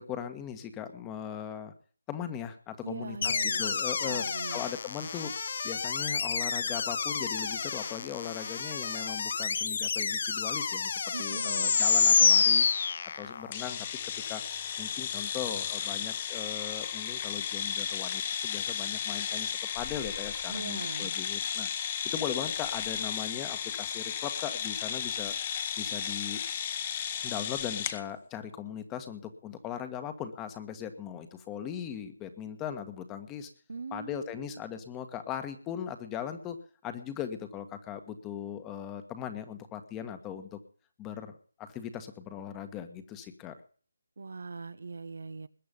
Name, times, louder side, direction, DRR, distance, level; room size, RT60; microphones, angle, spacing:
voice 1, 0.0-1.7 2.1-4.2 4.5-5.3 5.6-12.7 13.2-14.4 14.8-21.7 22.0-25.3 25.8-26.4 27.2-33.5 33.9-36.6 36.8-40.6 41.0-43.6, left 9 dB, 15° left, 9 dB, 1.6 m, -39 dB
voice 2, 2.8-3.8 4.0-4.6 11.1-11.8 20.5-21.2 33.7-34.6 44.2-45.5, right 4 dB, 65° right, 13 dB, 1.2 m, -41 dB
sound 1, 3.2-13.5, left 6 dB, 50° left, 1.0 m, -28 dB
sound 2, 13.5-28.0, left 8 dB, 30° left, 1.3 m, -34 dB
21.0 x 8.6 x 5.4 m, 0.43 s
figure-of-eight pair, 155°, 0 cm